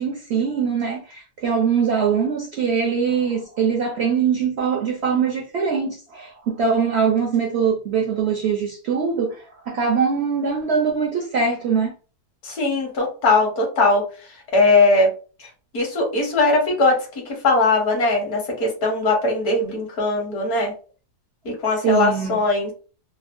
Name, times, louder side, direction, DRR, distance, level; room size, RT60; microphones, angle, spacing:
voice 1, 0.0-11.9 21.8-22.4, right 6 dB, 75° right, 0.6 m, -22 dB
voice 2, 12.4-14.0 14.5-15.1 15.4-15.5 15.7-17.0 17.3-20.7 21.4-22.7, left 3 dB, 65° left, 1.5 m, -20 dB
3.5 x 2.0 x 2.4 m
omnidirectional pair, 1.7 m